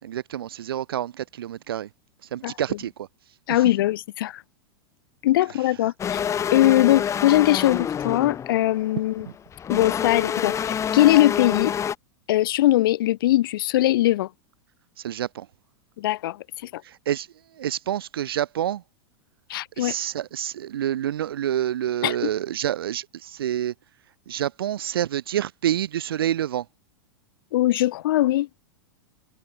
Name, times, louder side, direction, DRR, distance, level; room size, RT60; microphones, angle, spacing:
voice 1, 0.0-1.9 2.3-3.1 3.5-3.7 5.5-5.6 9.2-9.3 15.0-15.5 16.8-17.3 17.6-18.8 19.8-23.7 24.3-26.6, right 11 dB, 80° right, 6.3 m, -28 dB
voice 2, 3.5-4.4 5.2-6.2 6.5-9.3 9.7-11.7 12.3-14.3 16.0-16.4 16.7-16.8 19.5-19.9 22.0-22.2 27.5-28.5, left 15 dB, 70° left, 4.3 m, -21 dB
sound 1, 6.0-11.9, left 8 dB, 25° left, 3.6 m, -27 dB
hypercardioid pair, 120°, 12 cm